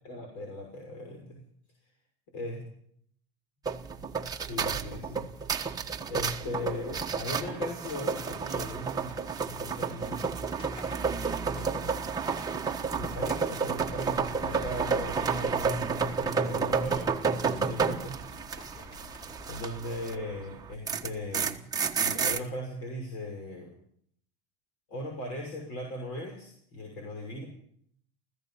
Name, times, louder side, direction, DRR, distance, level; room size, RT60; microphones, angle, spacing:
voice 1, 0.0-1.4 2.3-2.6 4.4-5.7 6.1-10.4 11.5-12.0 13.0-18.2 18.4-18.9 19.4-21.7 22.0-23.7 24.9-27.5, left 1 dB, 55° left, 2 dB, 6.4 m, -38 dB
sound 1, 3.7-20.2 20.5-22.4, right 5 dB, 10° right, 1.3 m, -31 dB
sound 2, 8.2-19.5, equal, 15° left, 4.2 m, -49 dB
29.0 x 15.5 x 5.8 m, 0.67 s
supercardioid pair, 150°, 30 cm